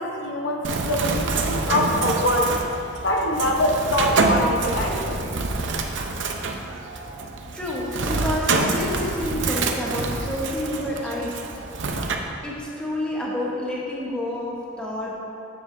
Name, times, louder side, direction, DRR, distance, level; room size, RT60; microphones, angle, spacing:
voice 1, 0.0-2.5 3.0-5.2, left 1 dB, 75° left, 0 dB, 0.9 m, -24 dB
Bird, 0.6-12.1, right 3 dB, 70° right, 0.6 m, -26 dB
voice 2, 7.5-11.4 12.4-15.1, left 1 dB, 5° left, -5 dB, 1.0 m, -29 dB
9.8 x 7.8 x 2.6 m, 2.7 s
head